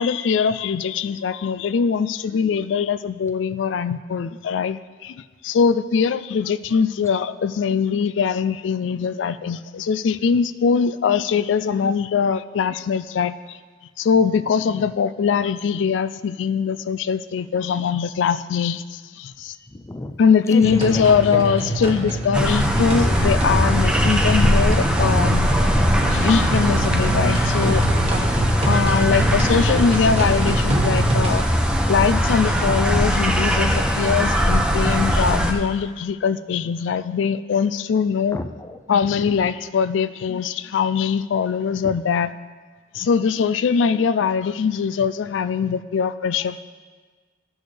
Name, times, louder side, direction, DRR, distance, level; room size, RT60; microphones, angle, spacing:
voice 1, 0.0-13.6 14.0-19.6 20.2-25.5 26.1-27.9 28.6-31.5 31.9-38.4 38.9-42.3 42.9-46.6, left 6 dB, 85° left, 13 dB, 0.4 m, -22 dB
voice 2, 19.7-20.2 20.5-21.0 38.3-38.8 39.1-39.3 41.8-41.9, left 1 dB, 15° left, 7 dB, 0.4 m, -32 dB
sound 1, 20.6-31.5, right 1 dB, 35° right, 1.2 m, -25 dB
sound 2, 22.3-35.5, equal, 5° right, 0.8 m, -20 dB
14.5 x 6.2 x 3.3 m, 1.4 s
head